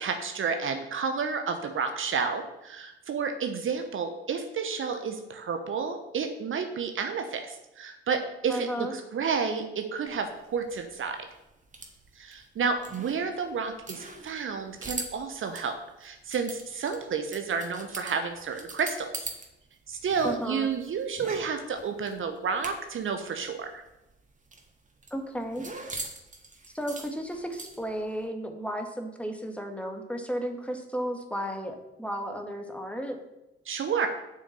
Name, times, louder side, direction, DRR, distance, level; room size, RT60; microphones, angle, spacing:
voice 1, 0.0-11.2 12.2-15.7 16.0-19.1 19.9-23.8 33.6-34.1, right 5 dB, 40° right, 5 dB, 1.1 m, -31 dB
voice 2, 8.5-8.9 20.2-20.7 25.1-25.7 26.7-33.2, equal, 5° left, 4 dB, 1.8 m, -34 dB
sound 1, 10.1-19.5 19.7-23.1 23.3-23.4 23.7-28.0, right 3 dB, 25° right, 2.3 m, -42 dB
7.8 x 6.4 x 7.2 m, 0.94 s
figure-of-eight pair, 45°, 31 cm